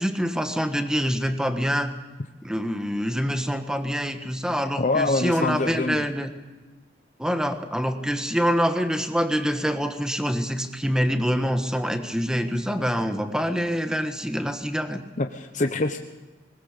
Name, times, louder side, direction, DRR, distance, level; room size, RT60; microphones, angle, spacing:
voice 1, 0.0-1.9 2.4-6.3 7.2-15.0, equal, 5° right, 7 dB, 1.4 m, -25 dB
voice 2, 4.8-6.1 15.2-16.0, left 2 dB, 45° left, 6 dB, 0.9 m, -25 dB
20.5 x 19.5 x 6.7 m, 1.3 s
head